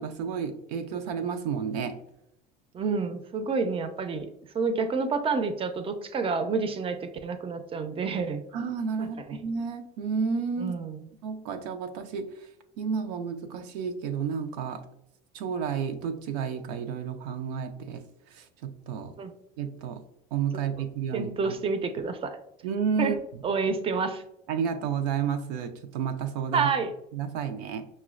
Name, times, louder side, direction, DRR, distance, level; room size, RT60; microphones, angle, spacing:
voice 1, 0.0-2.0 8.5-10.7 11.2-12.3 12.8-14.8 15.3-18.0 18.3-19.1 19.6-20.0 20.3-21.5 22.6-23.2 24.5-26.7 27.1-27.9, right 6 dB, 80° right, 6 dB, 0.4 m, -31 dB
voice 2, 2.7-8.4 9.0-9.4 10.6-11.0 19.2-19.3 21.1-22.4 23.0-23.2 23.4-24.2 26.5-26.9, right 4 dB, 30° right, 8 dB, 0.5 m, -29 dB
5.3 x 2.1 x 2.4 m, 0.79 s
hypercardioid pair, 75°, 20 cm